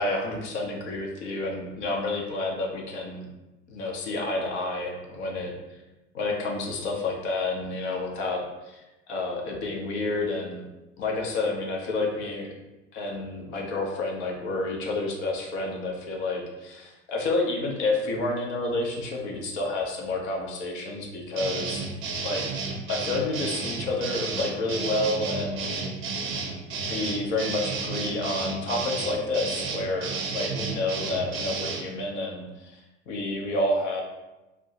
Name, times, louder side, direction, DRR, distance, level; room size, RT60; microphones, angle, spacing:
voice 1, 0.0-3.3 3.7-5.5 6.1-10.6 11.0-12.5 12.9-21.9 22.2-22.4 22.9-25.9 26.9-32.8 33.1-34.0, left 2 dB, 60° left, 0 dB, 0.8 m, -29 dB
sound 1, 21.4-31.9, right 4 dB, 30° right, 0.5 m, -32 dB
2.6 x 2.3 x 3.9 m, 1.0 s
figure-of-eight pair, 70°, 38 cm